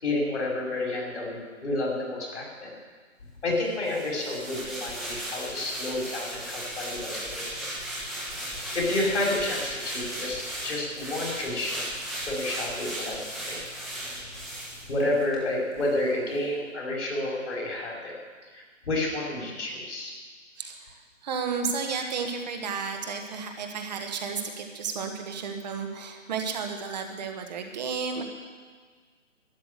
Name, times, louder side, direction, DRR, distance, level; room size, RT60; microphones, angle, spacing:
voice 1, 0.0-2.7 3.4-7.7 8.7-13.2 13.5-13.6 14.9-18.1 18.5-20.1, left 2 dB, 60° left, -2 dB, 5.2 m, -30 dB
sound 1, 3.8-15.4 15.8-15.9, right 1 dB, ahead, 1.6 m, -36 dB
voice 2, 20.6-28.2, right 5 dB, 35° right, 4 dB, 1.6 m, -32 dB
13.0 x 9.9 x 8.2 m, 1.5 s
figure-of-eight pair, 145°, 39 cm